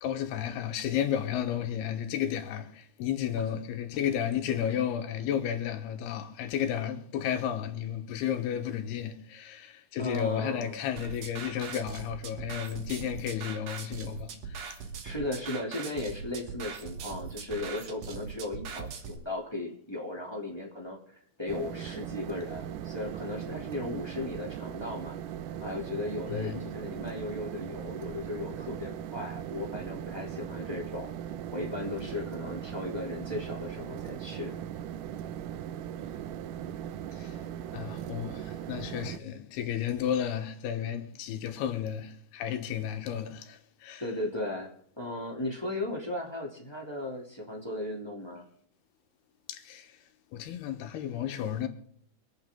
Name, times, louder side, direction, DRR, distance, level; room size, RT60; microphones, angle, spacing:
voice 1, 0.0-14.7 26.3-26.6 37.1-37.3 37.7-44.0 49.5-49.9 50.3-51.7, left 9 dB, 85° left, 3.2 m, -33 dB
voice 2, 10.0-10.7 15.0-21.0 21.4-25.2 25.6-31.1 31.5-34.5 44.0-44.7 45.0-48.5, left 2 dB, 10° left, 2.0 m, -36 dB
sound 1, 11.0-19.2, right 6 dB, 55° right, 2.1 m, -41 dB
sound 2, 21.5-39.2, right 10 dB, 80° right, 2.0 m, -39 dB
25.5 x 8.8 x 3.7 m
omnidirectional pair, 4.5 m